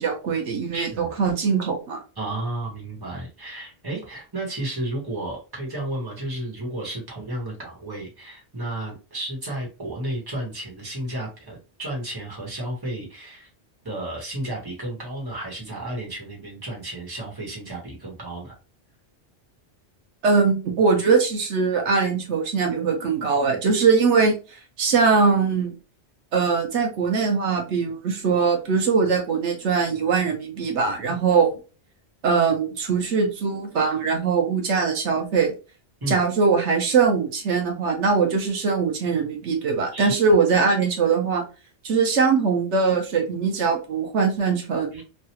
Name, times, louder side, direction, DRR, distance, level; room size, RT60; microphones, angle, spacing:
voice 1, 0.0-2.0 20.2-25.7 26.3-31.5 32.2-35.5 36.1-41.4 41.8-45.0, right 5 dB, 80° right, 2 dB, 1.1 m, -21 dB
voice 2, 0.7-1.1 2.1-13.5 13.8-18.5 31.0-31.1 36.0-36.2 39.9-40.1 44.9-45.0, right 1 dB, 20° right, -2 dB, 1.2 m, -32 dB
3.2 x 2.3 x 2.8 m, 0.32 s
omnidirectional pair, 1.2 m